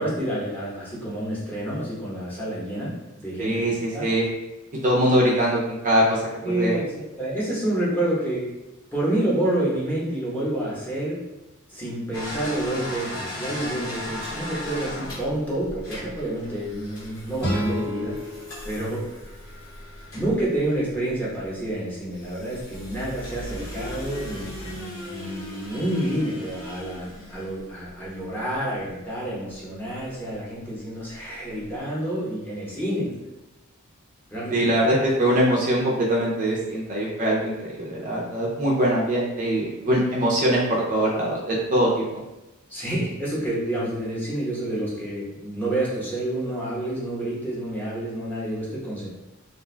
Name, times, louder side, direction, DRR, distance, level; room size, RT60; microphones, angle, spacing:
voice 1, 0.0-4.1 6.4-8.5 8.9-11.3 11.7-18.2 18.6-19.1 20.1-33.1 34.3-34.7 42.7-49.1, right 1 dB, 10° left, -8 dB, 0.8 m, -28 dB
voice 2, 3.4-4.2 4.8-6.2 6.6-6.8 34.5-42.2, right 1 dB, 35° right, -4 dB, 0.4 m, -22 dB
sound 1, 12.1-21.5 22.1-28.1 29.5-29.6 30.0-30.1 31.2-31.3 31.4-31.6, left 1 dB, 65° left, 1.0 m, -37 dB
sound 2, 17.4-20.4, equal, 90° left, 1.3 m, -32 dB
2.4 x 2.2 x 3.2 m, 0.99 s
head